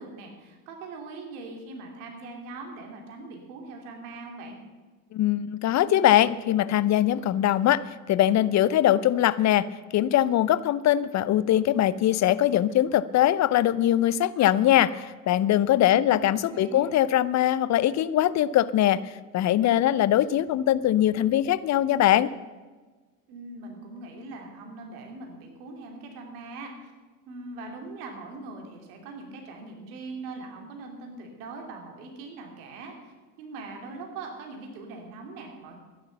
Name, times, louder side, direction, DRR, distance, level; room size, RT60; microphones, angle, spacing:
voice 1, 0.0-4.6 15.9-16.9 23.3-26.9 27.3-35.8, right 3 dB, 65° right, 2 dB, 3.1 m, -41 dB
voice 2, 5.1-7.8 8.1-9.7 9.9-22.3, left 12 dB, 35° left, 18 dB, 0.6 m, -22 dB
12.5 x 10.5 x 6.9 m, 1.3 s
hypercardioid pair, 65°, 48 cm